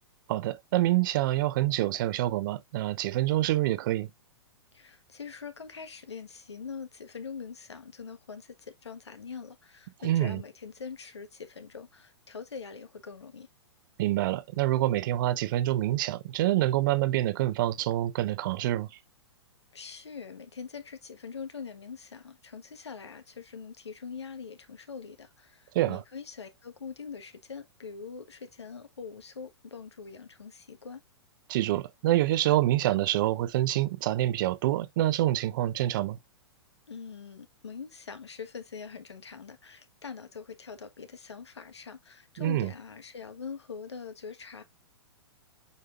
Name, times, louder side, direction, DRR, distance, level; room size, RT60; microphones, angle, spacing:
voice 1, 0.3-4.1 10.0-10.4 14.0-18.9 25.7-26.0 31.5-36.2 42.4-42.7, right 14 dB, 50° right, 0.8 m, -26 dB
voice 2, 4.7-13.5 19.7-31.0 36.9-44.6, left 5 dB, 75° left, 1.4 m, -43 dB
8.2 x 4.9 x 2.5 m
figure-of-eight pair, 110°, 14 cm